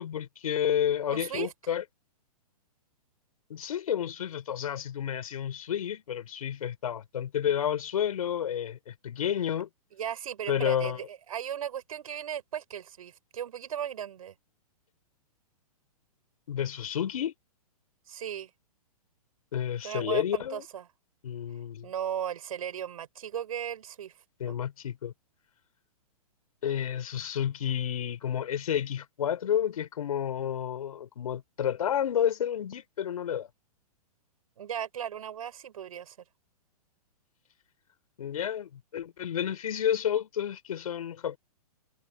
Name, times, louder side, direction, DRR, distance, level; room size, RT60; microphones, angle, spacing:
voice 1, 0.0-1.8 3.5-9.7 10.5-11.0 16.5-17.3 19.5-20.6 21.2-21.9 24.4-25.1 26.6-33.5 38.2-41.4, left 9 dB, 65° left, 4.4 m, -30 dB
voice 2, 1.1-1.5 10.0-14.3 18.1-18.5 19.8-20.8 21.8-24.1 24.5-24.6 34.6-36.2, right 9 dB, 65° right, 5.6 m, -36 dB
hypercardioid pair, 120°, 20 cm